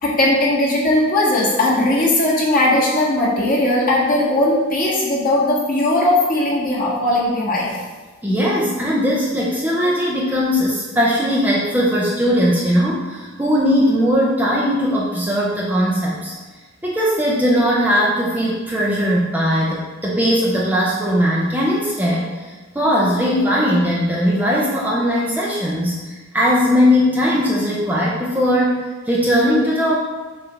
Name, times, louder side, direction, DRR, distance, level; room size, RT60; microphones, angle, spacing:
voice 1, 0.0-7.7, left 1 dB, 40° left, -6 dB, 1.6 m, -18 dB
voice 2, 8.2-16.3 16.8-29.9, equal, 10° right, -5 dB, 0.6 m, -19 dB
7.0 x 2.6 x 5.7 m, 1.3 s
head